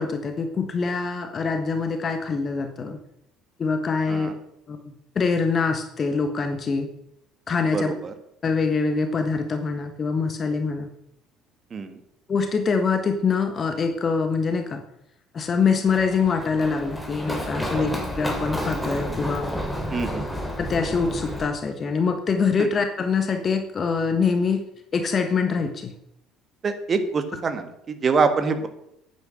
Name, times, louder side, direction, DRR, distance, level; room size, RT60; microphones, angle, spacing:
voice 1, 0.0-3.0 3.6-4.3 4.7-6.9 7.5-7.9 8.4-10.9 12.3-14.8 15.3-17.9 18.2-19.5 19.9-20.0 20.6-24.6 24.9-25.9, left 5 dB, 35° left, 7 dB, 1.3 m, -24 dB
voice 2, 7.7-8.1 11.7-11.9 17.7-17.8 19.9-20.3 26.6-28.7, right 4 dB, 35° right, 8 dB, 1.7 m, -25 dB
Run, 15.8-21.4, equal, 5° left, 3.0 m, -30 dB
9.4 x 8.9 x 6.3 m, 0.78 s
figure-of-eight pair, 55°, 0 cm